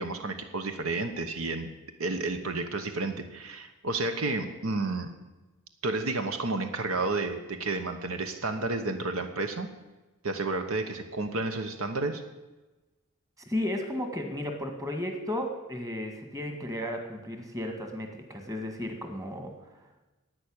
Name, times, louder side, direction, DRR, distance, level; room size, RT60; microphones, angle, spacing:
voice 1, 0.0-1.7 2.0-5.1 5.8-9.7 10.2-12.2, right 3 dB, 70° right, 7 dB, 1.1 m, -31 dB
voice 2, 13.5-19.8, left 1 dB, 15° right, 4 dB, 1.8 m, -34 dB
11.5 x 9.3 x 8.7 m, 1.1 s
head